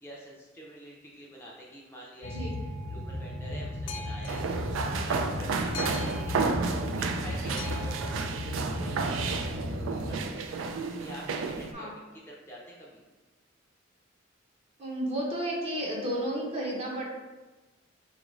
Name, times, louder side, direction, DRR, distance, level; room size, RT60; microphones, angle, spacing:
voice 1, 0.0-2.5 2.9-4.6 4.9-13.0, right 1 dB, 10° left, -4 dB, 0.5 m, -47 dB
Boat Water vehicle, 2.2-10.2, left 1 dB, 70° left, 0.5 m, -35 dB
sound 1, 4.3-11.7, right 4 dB, 85° right, 0.4 m, -31 dB
voice 2, 14.8-17.1, right 1 dB, 30° right, -3 dB, 0.8 m, -32 dB
5.0 x 2.5 x 3.1 m, 1.2 s
head